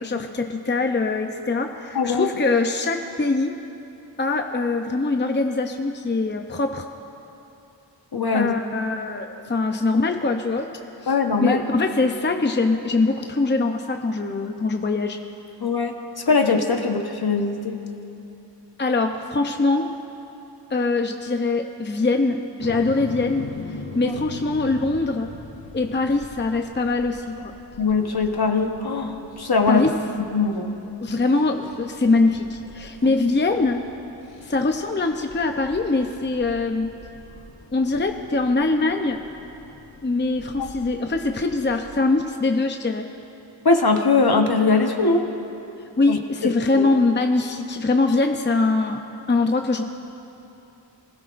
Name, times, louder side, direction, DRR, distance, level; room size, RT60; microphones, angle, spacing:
voice 1, 0.0-3.5 4.2-6.9 8.3-10.7 11.0-11.1 11.4-15.2 18.8-19.9 20.7-23.5 23.9-25.3 25.7-27.5 29.7-29.9 31.0-33.8 34.4-36.9 37.7-39.2 40.0-43.1 46.0-49.0 49.3-49.8, left 3 dB, 25° left, 5 dB, 0.7 m, -23 dB
voice 2, 1.9-2.3 8.1-8.5 11.1-11.6 15.6-17.8 24.0-24.1 27.8-29.9 30.2-30.7 40.6-40.7 43.6-45.3 46.1-46.9, left 4 dB, 55° left, 4 dB, 1.2 m, -21 dB
sound 1, 22.6-42.1, left 3 dB, 85° left, 1.3 m, -42 dB
24.5 x 15.5 x 2.6 m, 2.9 s
wide cardioid pair, 70°, 44 cm